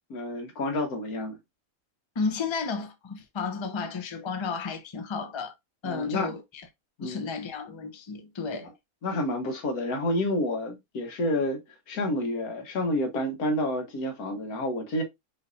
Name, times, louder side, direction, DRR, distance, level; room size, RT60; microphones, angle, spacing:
voice 1, 0.1-1.4 5.8-6.3 7.0-7.3 9.0-11.6 11.9-15.0, left 1 dB, 90° left, 1.6 m, -29 dB
voice 2, 2.2-5.5 5.8-6.6 7.0-8.7, left 5 dB, 30° left, 0.6 m, -32 dB
5.5 x 3.2 x 2.6 m
omnidirectional pair, 1.5 m